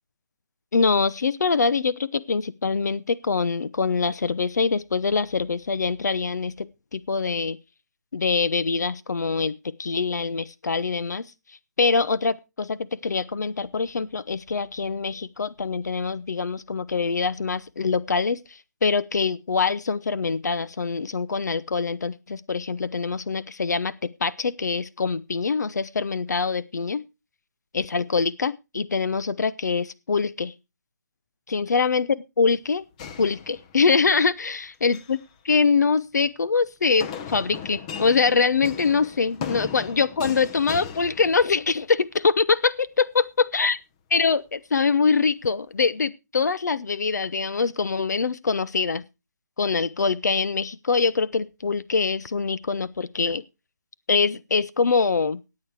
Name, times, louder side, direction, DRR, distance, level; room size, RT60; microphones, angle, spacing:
voice 1, 0.7-7.6 8.1-11.2 11.8-18.4 18.8-27.0 27.7-30.5 31.5-32.1 32.4-32.8 33.2-35.2 35.4-43.8 44.1-49.0 49.6-53.4 54.1-55.4, left 4 dB, 75° left, 17 dB, 0.8 m, -24 dB
sound 1, 33.0-34.1 34.7-35.2 37.0-41.8, left 7 dB, 20° left, 0.8 m, -37 dB
14.5 x 8.6 x 4.7 m, 0.28 s
hypercardioid pair, 165°, 9 cm